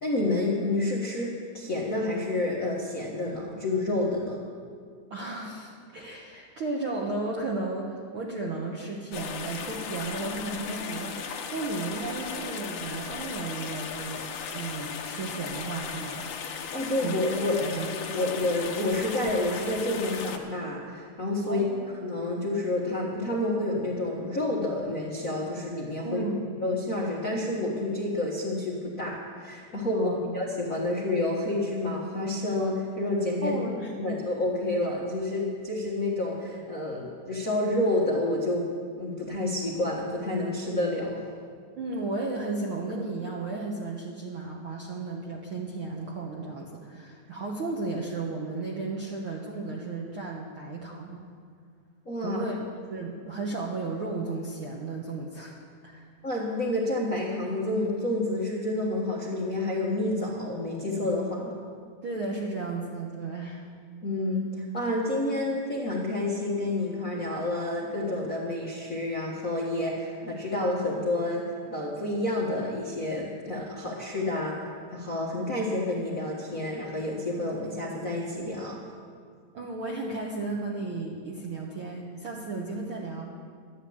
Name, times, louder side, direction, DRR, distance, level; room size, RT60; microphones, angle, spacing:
voice 1, 0.0-4.4 16.7-17.6 17.9-21.6 22.0-26.2 26.6-30.1 30.3-33.6 34.0-38.7 39.0-41.2 52.0-52.4 56.2-61.5 64.0-78.8, left 2 dB, 45° left, -4 dB, 1.1 m, -29 dB
voice 2, 5.1-14.2 14.5-16.2 17.0-17.2 17.6-17.9 21.5-21.9 26.0-26.4 29.9-30.3 33.4-34.2 41.8-51.2 52.2-52.6 52.9-56.1 62.0-63.7 79.5-83.3, right 3 dB, 65° right, -2 dB, 1.4 m, -34 dB
sound 1, 9.1-20.4, left 6 dB, 70° left, 2.5 m, -36 dB
12.0 x 10.0 x 8.6 m, 2.1 s
omnidirectional pair, 3.9 m